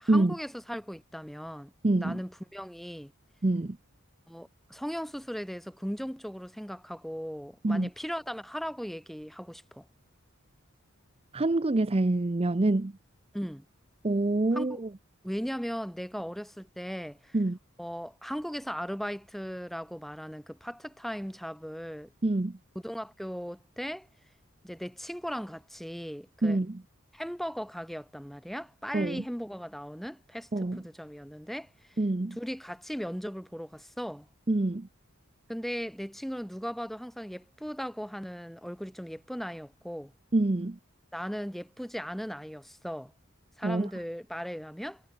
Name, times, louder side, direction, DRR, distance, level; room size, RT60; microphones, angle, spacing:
voice 1, 0.0-1.7 2.0-3.1 4.3-9.9 13.3-13.7 14.5-14.8 15.2-17.4 17.8-22.1 22.8-24.1 24.6-26.6 27.1-32.0 32.4-34.3 35.5-40.1 41.1-43.1 43.6-45.0, equal, ahead, 2.1 m, -38 dB
voice 2, 1.8-2.2 3.4-3.8 7.6-7.9 11.3-12.9 14.0-14.9 17.3-17.6 22.2-22.6 26.4-26.8 28.9-29.2 30.5-30.8 32.0-32.4 34.5-34.9 40.3-40.8 43.6-43.9, right 2 dB, 30° right, 0.6 m, -26 dB
head